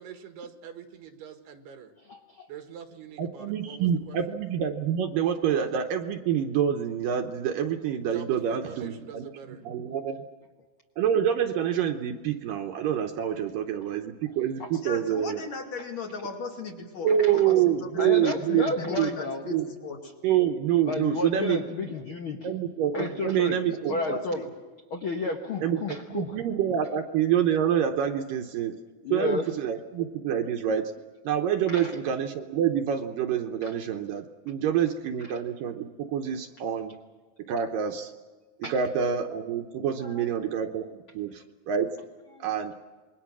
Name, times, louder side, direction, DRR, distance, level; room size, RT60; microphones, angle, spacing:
voice 1, 0.0-1.9 2.5-4.4 8.1-9.7, right 8 dB, 90° right, 7 dB, 3.6 m, -44 dB
voice 2, 2.1-2.5 13.8-13.9 14.6-14.7 17.2-17.3 18.0-19.4 20.8-22.5 22.9-23.6 23.9-24.4 24.9-26.4 29.0-29.5 31.7-32.0 33.6-33.7 35.3-35.4 38.6-38.8 40.0-40.3 42.3-42.5, left 3 dB, 85° left, 4 dB, 1.1 m, -32 dB
voice 3, 3.2-9.3 9.6-10.2 11.0-15.4 17.0-19.1 19.5-19.6 20.2-21.9 22.4-24.2 25.6-25.8 26.1-28.7 29.1-30.9 31.2-36.9 37.5-38.1 38.6-41.9 42.4-42.7, right 9 dB, 70° right, 5 dB, 2.4 m, -27 dB
voice 4, 14.8-20.1 23.6-24.5, left 3 dB, 50° left, 1 dB, 3.5 m, -38 dB
27.5 x 22.0 x 6.2 m, 1.4 s
omnidirectional pair, 4.5 m